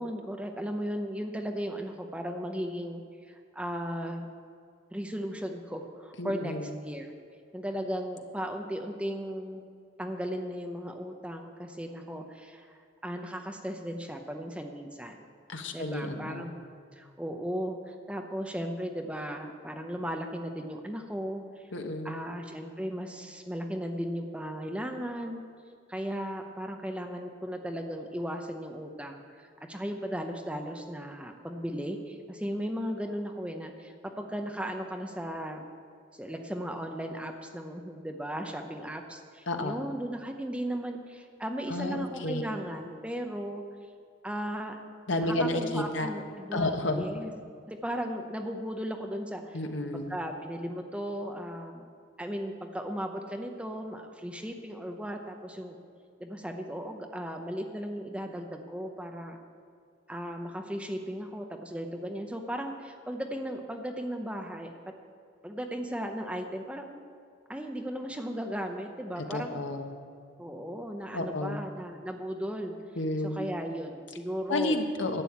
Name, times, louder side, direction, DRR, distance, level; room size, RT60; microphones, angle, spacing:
voice 1, 0.0-3.0 3.3-4.2 4.9-7.1 7.5-9.6 10.0-15.3 15.7-16.5 16.9-21.7 22.0-25.4 25.9-35.6 36.1-43.6 44.2-44.8 45.2-47.3 47.7-49.6 49.9-51.9 52.2-55.8 56.2-59.4 60.1-64.7 65.4-67.0 67.5-69.6 70.4-72.7 73.2-74.8, equal, 5° right, 4 dB, 0.7 m, -36 dB
voice 2, 6.2-6.7 15.5-16.5 21.7-22.2 39.5-39.8 41.7-42.4 45.1-46.1 46.5-47.0 49.5-50.2 69.3-70.0 71.1-71.6 73.0-73.4 74.5-75.2, left 2 dB, 75° left, 5 dB, 1.2 m, -31 dB
11.5 x 7.6 x 8.6 m, 2.3 s
head